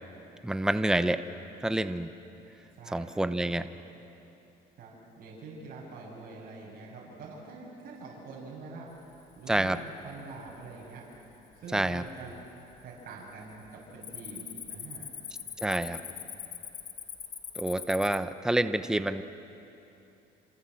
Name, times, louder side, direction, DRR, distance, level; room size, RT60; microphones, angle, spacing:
voice 1, 0.4-1.2 1.6-2.1 2.9-3.7 9.5-9.8 11.7-12.0 15.6-16.0 17.6-19.2, right 1 dB, 5° right, 11 dB, 0.8 m, -27 dB
voice 2, 2.7-3.4 4.8-9.8 10.0-12.3 12.8-15.1 15.6-16.0, right 3 dB, 60° right, -5 dB, 6.6 m, -45 dB
Cricket, 9.2-9.6 10.1-10.5 11.1-11.2 11.8-12.4 12.7-13.0 13.3-18.2, left 8 dB, 50° left, 2.0 m, -42 dB
28.0 x 27.5 x 7.7 m, 2.9 s
cardioid pair, 110°, 17 cm